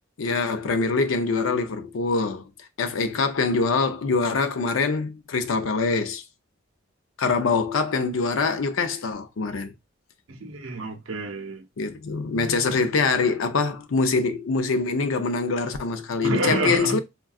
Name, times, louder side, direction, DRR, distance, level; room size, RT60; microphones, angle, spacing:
voice 1, 0.2-2.5 2.8-6.2 7.2-9.7 11.8-17.0, left 4 dB, 75° left, 0.5 m, -24 dB
voice 2, 10.3-11.6 16.2-17.0, right 2 dB, 75° right, 0.7 m, -28 dB
3.6 x 2.2 x 2.3 m
head